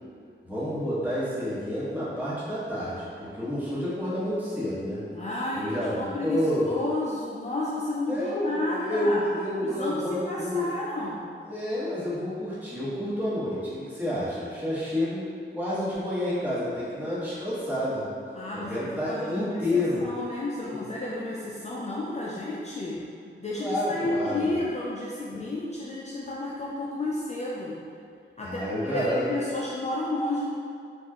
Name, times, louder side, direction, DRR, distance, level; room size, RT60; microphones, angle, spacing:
voice 1, 0.4-5.0 5.5-6.7 8.1-10.7 11.5-18.0 18.5-20.0 20.6-20.8 23.6-24.4 25.3-25.4 28.4-29.2, left 1 dB, 10° right, -11 dB, 1.2 m, -29 dB
voice 2, 5.1-9.2 9.6-11.2 18.3-23.0 23.4-27.8 28.4-30.5, left 2 dB, 35° left, -6 dB, 0.4 m, -32 dB
4.3 x 2.4 x 2.8 m, 2.3 s
wide cardioid pair, 105°, 21 cm